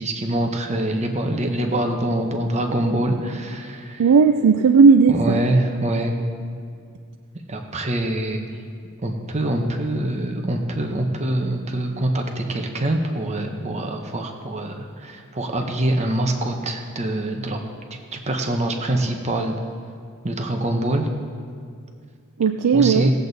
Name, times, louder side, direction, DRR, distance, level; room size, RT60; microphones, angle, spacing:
voice 1, 0.0-4.0 5.1-6.2 7.5-8.4 9.0-17.6 18.1-19.6 20.2-21.1 22.7-23.1, right 1 dB, 30° right, 3 dB, 0.9 m, -24 dB
voice 2, 4.0-5.4 22.4-23.1, right 5 dB, 90° right, 6 dB, 0.4 m, -15 dB
18.0 x 8.0 x 4.0 m, 2.2 s
head